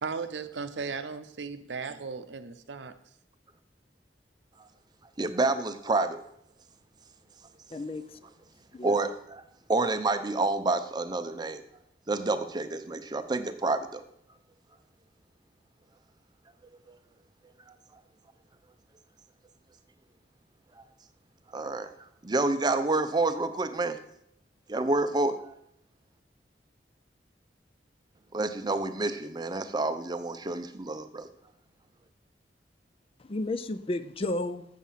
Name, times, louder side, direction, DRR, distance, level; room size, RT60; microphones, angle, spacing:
voice 1, 0.0-2.9, right 5 dB, 85° right, 0.7 m, -36 dB
voice 2, 5.2-6.2 8.8-9.4 9.7-11.6 12.1-14.0 21.5-21.9 22.2-24.0 24.7-25.5 28.3-31.3, right 2 dB, 25° right, 0.6 m, -28 dB
voice 3, 7.7-8.0 8.7-9.0 33.2-34.7, left 2 dB, 30° left, 0.4 m, -32 dB
7.3 x 7.3 x 5.6 m
head